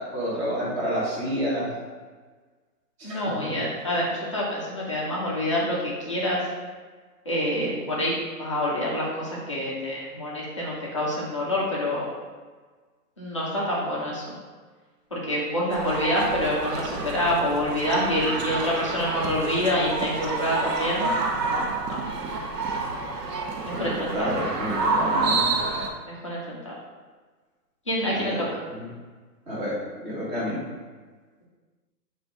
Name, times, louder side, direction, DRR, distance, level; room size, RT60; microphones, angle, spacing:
voice 1, 0.0-1.7 3.0-3.6 23.7-25.6 28.1-28.9 29.5-30.6, equal, 15° right, -7 dB, 0.7 m, -30 dB
voice 2, 3.0-6.5 7.3-12.1 13.2-14.2 15.1-21.1 21.4-21.7 23.7-24.3 26.2-26.7 27.9-28.5, left 1 dB, 20° left, -5 dB, 0.4 m, -27 dB
sound 1, 15.7-25.9, right 3 dB, 80° right, 0.8 m, -28 dB
4.0 x 2.5 x 4.6 m, 1.4 s
hypercardioid pair, 145°, 48 cm